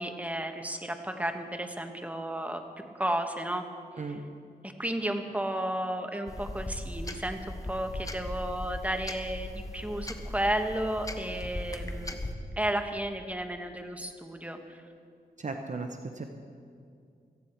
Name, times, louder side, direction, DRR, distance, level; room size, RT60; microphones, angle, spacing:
voice 1, 0.0-2.6 2.9-3.6 4.6-12.2 12.6-14.8, right 1 dB, 10° right, 5 dB, 1.3 m, -33 dB
sound 1, 6.3-12.3, left 1 dB, 20° left, 1.1 m, -38 dB
voice 2, 15.4-16.2, right 3 dB, 45° right, 4 dB, 0.9 m, -36 dB
18.0 x 14.5 x 4.5 m, 2.3 s
wide cardioid pair, 75°, 17 cm